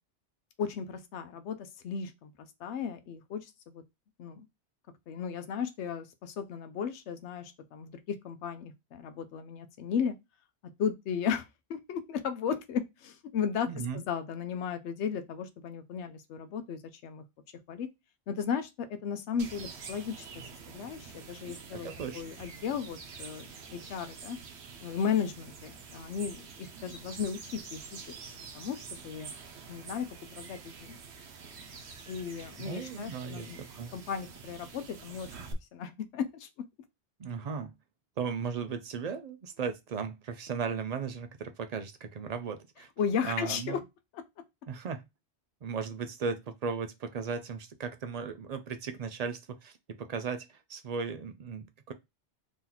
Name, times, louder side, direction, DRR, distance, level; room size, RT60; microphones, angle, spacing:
voice 1, 0.6-2.3 2.6-3.8 4.2-4.5 5.1-10.1 10.8-17.2 17.7-17.9 18.3-21.9 22.1-24.4 24.8-27.8 28.5-29.3 29.7-30.1 30.3-31.0 32.1-33.6 33.9-35.3 35.7-36.5 43.0-43.8, left 7 dB, 85° left, 0.9 m, -35 dB
voice 2, 13.7-14.0 21.7-22.2 32.6-33.9 37.2-37.7 38.2-42.9 43.2-43.8 44.7-45.0 45.6-51.9, right 6 dB, 55° right, 0.4 m, -36 dB
sound 1, 19.4-35.5, right 5 dB, 75° right, 0.9 m, -47 dB
3.1 x 2.9 x 3.8 m
omnidirectional pair, 1.1 m